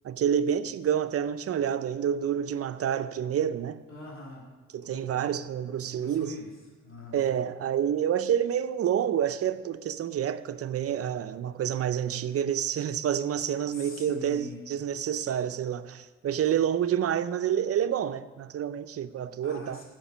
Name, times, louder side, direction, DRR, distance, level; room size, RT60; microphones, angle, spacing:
voice 1, 0.0-3.8 4.7-6.3 7.1-19.8, right 9 dB, 50° right, 0.6 m, -28 dB
voice 2, 3.9-4.5 4.9-5.4 5.9-6.6 6.8-7.2 13.7-14.6 19.4-19.8, left 2 dB, 45° left, 2.4 m, -43 dB
14.5 x 6.0 x 6.2 m
cardioid pair, 90°, 30 cm